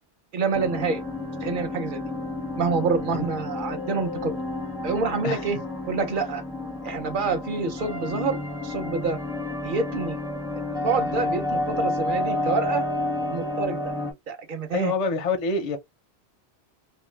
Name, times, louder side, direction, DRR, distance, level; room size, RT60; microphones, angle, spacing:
voice 1, 0.3-1.0 1.4-2.0 2.6-4.3 4.8-5.6 5.9-6.4 6.8-8.4 8.6-9.2 9.6-10.2 10.6-12.8 13.2-13.8 14.3-14.9, right 4 dB, 55° right, 0.8 m, -27 dB
sound 1, 0.5-14.1, left 2 dB, 5° right, 0.6 m, -30 dB
voice 2, 14.7-15.8, left 3 dB, 45° left, 0.5 m, -26 dB
2.6 x 2.2 x 3.2 m
omnidirectional pair, 1.1 m